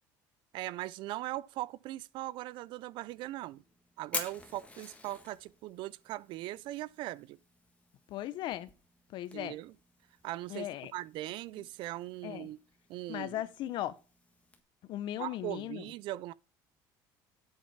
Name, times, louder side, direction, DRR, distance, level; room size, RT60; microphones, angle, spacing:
voice 1, 0.5-3.6 4.0-7.4 9.3-9.7 10.2-12.6 12.9-13.4 15.2-16.3, right 16 dB, 65° right, 0.4 m, -40 dB
Fire, 3.1-14.6, left 3 dB, 15° left, 1.6 m, -48 dB
voice 2, 8.1-8.7 9.1-9.5 10.5-10.9 11.6-11.7 12.2-12.5 13.1-14.0 14.9-15.9, left 13 dB, 60° left, 0.8 m, -37 dB
8.2 x 6.3 x 5.7 m
supercardioid pair, 110°, 9 cm